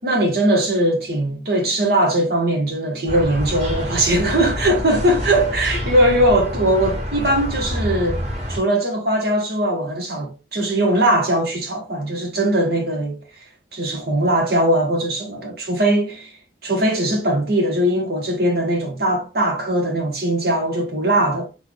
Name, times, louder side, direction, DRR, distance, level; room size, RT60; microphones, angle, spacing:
voice 1, 0.0-8.2 8.5-13.2 13.7-16.3 16.6-21.5, right 1 dB, 60° right, 1.5 m, -20 dB
sound 1, 3.1-8.6, equal, 40° right, 2.1 m, -27 dB
4.2 x 3.4 x 3.3 m
head